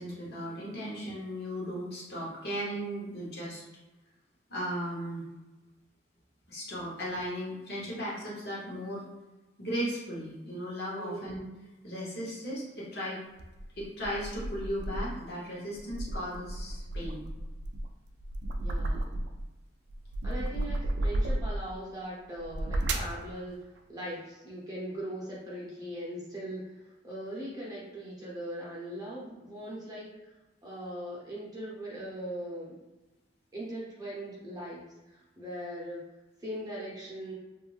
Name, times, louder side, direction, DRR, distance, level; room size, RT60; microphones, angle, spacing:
voice 1, 0.0-3.6 4.5-5.2 6.5-9.0 9.6-11.5 11.8-13.2 13.8-17.2, equal, 55° left, -6 dB, 1.0 m, -36 dB
voice 2, 11.0-11.4 18.6-19.2 20.2-23.6 23.9-30.1 30.6-32.8 33.5-36.0 36.4-37.3, right 1 dB, 20° right, -6 dB, 0.7 m, -40 dB
sound 1, 13.4-15.3 15.7-19.5 19.9-21.7 22.4-23.2, right 1 dB, 65° right, 0.3 m, -33 dB
2.4 x 2.1 x 3.1 m, 1.1 s
head